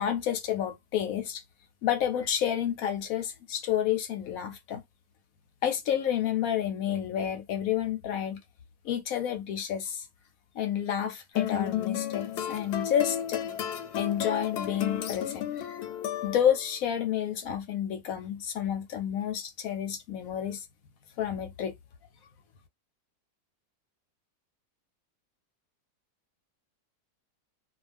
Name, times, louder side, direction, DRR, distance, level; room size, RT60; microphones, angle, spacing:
voice 1, 0.0-1.4 1.8-4.8 5.6-8.4 8.8-10.1 10.5-13.4 13.9-15.8 16.2-20.7 21.2-21.7, left 9 dB, 70° left, 0.9 m, -30 dB
sound 1, 11.4-16.7, left 10 dB, 85° left, 1.2 m, -33 dB
2.4 x 2.3 x 3.3 m
omnidirectional pair, 1.7 m